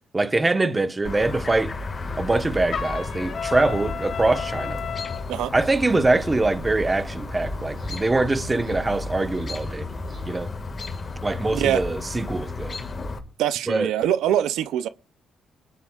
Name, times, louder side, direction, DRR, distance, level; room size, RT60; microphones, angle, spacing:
voice 1, 0.1-1.7 2.2-4.8 5.5-9.9 10.2-10.5 11.2-12.8 13.7-13.9, right 2 dB, 20° right, 1.1 m, -23 dB
Chirp tweet, 1.0-13.2, left 3 dB, 35° left, 1.9 m, -33 dB
Trumpet, 2.7-5.3, left 7 dB, 55° left, 2.7 m, -32 dB
sound 1, 5.4-10.5, right 2 dB, 40° right, 3.8 m, -42 dB
voice 2, 11.5-11.8 13.4-14.9, right 11 dB, 85° right, 0.6 m, -23 dB
21.5 x 11.0 x 2.4 m
cardioid pair, 90°, 0 cm